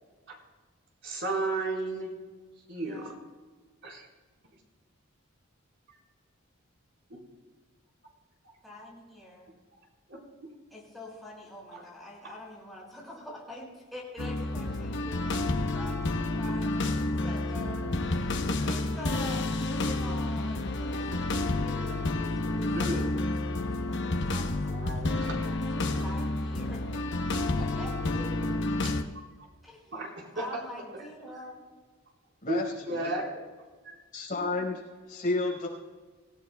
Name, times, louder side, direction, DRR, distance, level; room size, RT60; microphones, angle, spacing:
voice 1, 1.0-2.1 2.7-3.1 3.8-4.1 7.1-7.2 10.1-10.2 11.7-11.8 12.2-12.3 22.7-23.0 24.7-26.1 28.8-28.9 29.9-30.1 30.4-30.5 30.9-31.0 32.5-33.3, right 2 dB, 60° right, -1 dB, 4.4 m, -34 dB
voice 2, 2.8-3.2 8.6-9.5 10.7-15.4 15.7-27.0 27.3-28.7 29.6-31.7, left 1 dB, ahead, -5 dB, 5.7 m, -45 dB
sound 1, 14.2-29.0, left 2 dB, 60° left, 0.9 m, -30 dB
voice 3, 34.1-34.8 35.1-35.7, left 2 dB, 40° left, -2 dB, 4.9 m, -30 dB
26.0 x 16.0 x 2.3 m, 1.4 s
head